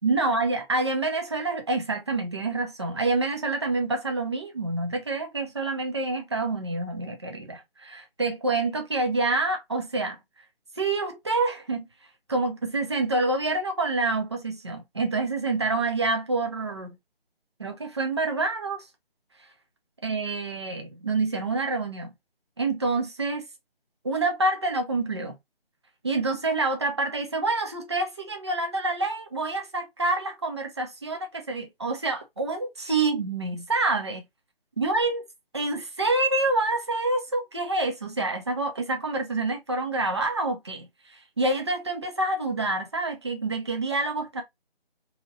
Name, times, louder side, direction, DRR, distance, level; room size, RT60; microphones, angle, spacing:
voice 1, 0.0-10.2 10.8-11.9 12.3-16.9 17.6-18.8 20.0-22.1 22.6-23.4 24.0-25.4 26.0-34.2 34.8-35.2 35.5-40.9 41.4-44.4, right 2 dB, 30° right, 0.6 m, -27 dB
2.9 x 2.8 x 2.5 m
figure-of-eight pair, 165°, 30 cm